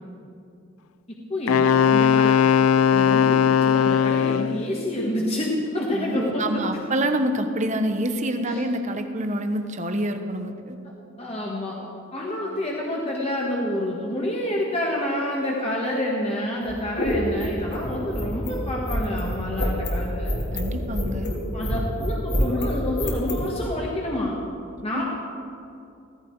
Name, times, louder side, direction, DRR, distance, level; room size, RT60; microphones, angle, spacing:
voice 1, 1.3-2.6 2.9-6.6 8.5-8.6 11.2-11.8 12.1-20.3 21.5-24.3 24.8-25.0, left 1 dB, 30° left, -3 dB, 1.5 m, -28 dB
Wind instrument woodwind instrument, 1.5-4.6, left 8 dB, 85° left, 0.4 m, -18 dB
voice 2, 5.9-10.8 20.5-21.3 24.9-25.0, right 1 dB, 35° right, 6 dB, 1.1 m, -27 dB
sound 1, 16.6-23.5, equal, 55° left, 2.9 m, -27 dB
16.0 x 15.0 x 4.7 m, 2.5 s
head